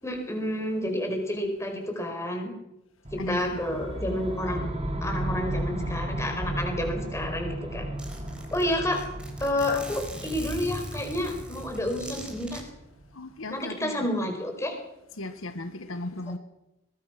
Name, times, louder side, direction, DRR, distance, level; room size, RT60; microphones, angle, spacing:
voice 1, 0.0-2.5 3.1-4.6 5.0-7.9 8.5-9.0 9.4-12.6 13.5-14.8, left 1 dB, 15° left, 4.9 m, -30 dB
sound 1, 3.0-13.1, right 1 dB, 30° right, 3.3 m, -35 dB
voice 2, 3.2-3.6 13.1-14.1 15.2-16.4, left 2 dB, 85° left, 1.5 m, -36 dB
Zipper (clothing), 7.2-7.3 7.5-7.6 8.0-12.6, equal, 5° right, 4.1 m, -40 dB
21.5 x 20.5 x 6.0 m
head